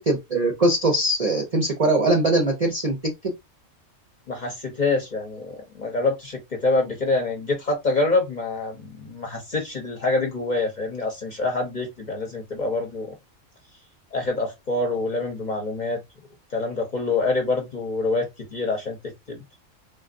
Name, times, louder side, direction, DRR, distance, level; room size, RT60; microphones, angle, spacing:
voice 1, 0.1-3.0, right 2 dB, 45° right, 0.5 m, -21 dB
voice 2, 4.3-13.1 14.1-16.0 16.5-19.0 19.3-19.4, left 3 dB, 40° left, 0.7 m, -26 dB
3.3 x 2.4 x 2.5 m
omnidirectional pair, 1.4 m